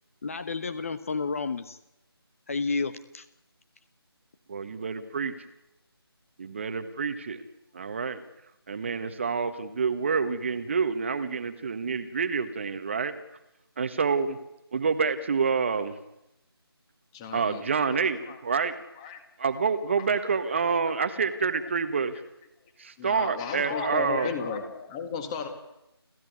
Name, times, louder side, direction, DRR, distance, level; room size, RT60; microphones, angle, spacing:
voice 1, 0.2-1.8 2.5-3.2, left 4 dB, 35° left, 12 dB, 1.0 m, -31 dB
voice 2, 4.5-5.3 6.4-7.4 7.7-8.2 8.7-13.1 13.8-14.4 14.7-16.0 17.3-18.7 19.4-22.1 22.8-24.3, right 5 dB, 30° right, 10 dB, 1.3 m, -27 dB
voice 3, 17.1-18.4 19.0-19.2 20.0-20.4 21.0-21.1 21.6-21.7 23.0-25.5, left 5 dB, 15° left, 7 dB, 2.0 m, -35 dB
30.0 x 14.0 x 9.5 m, 0.89 s
figure-of-eight pair, 165°, 13 cm